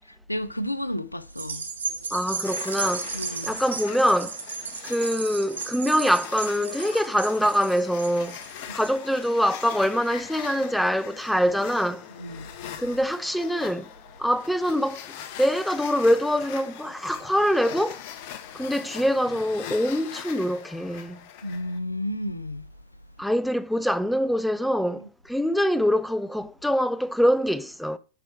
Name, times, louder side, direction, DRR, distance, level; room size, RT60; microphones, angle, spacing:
voice 1, 0.3-1.7 3.1-3.6 12.2-12.5 21.4-22.7, left 1 dB, 85° left, 0.5 m, -32 dB
sound 1, 1.3-10.0 10.5-10.6, right 5 dB, 70° right, 1.2 m, -35 dB
voice 2, 2.1-3.1 3.4-4.4 4.8-8.4 8.7-12.0 12.8-13.9 14.2-15.1 15.4-18.0 18.5-21.2 23.2-28.0, equal, ahead, 0.4 m, -24 dB
sound 2, 2.4-21.8, left 9 dB, 45° left, 0.8 m, -42 dB
9.4 x 4.9 x 4.6 m
figure-of-eight pair, 90°, 0 cm